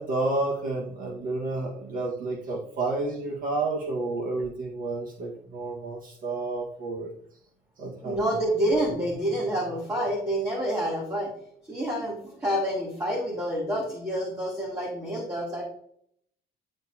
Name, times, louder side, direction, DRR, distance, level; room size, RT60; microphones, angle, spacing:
voice 1, 0.0-7.1 7.8-8.2, right 2 dB, 55° right, -2 dB, 1.8 m, -30 dB
voice 2, 8.0-11.3 11.7-15.6, equal, 20° right, -5 dB, 2.7 m, -28 dB
11.0 x 4.1 x 2.9 m, 0.65 s
cardioid pair, 110°, 17 cm